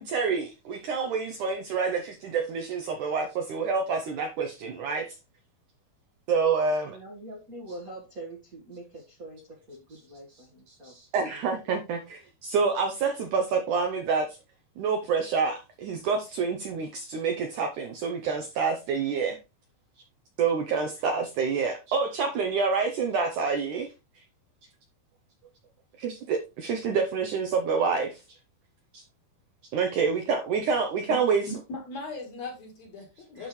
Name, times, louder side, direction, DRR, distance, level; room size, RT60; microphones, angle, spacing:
voice 1, 0.0-5.2 6.3-7.0 10.8-14.4 14.8-19.4 20.4-24.2 26.0-28.4 28.9-29.0 29.7-31.4, right 5 dB, 80° right, 1.8 m, -27 dB
voice 2, 6.8-10.9 11.2-11.7, right 1 dB, 60° right, 0.9 m, -44 dB
voice 3, 31.5-33.5, left 2 dB, 55° left, 2.4 m, -38 dB
11.5 x 4.4 x 3.2 m
omnidirectional pair, 4.6 m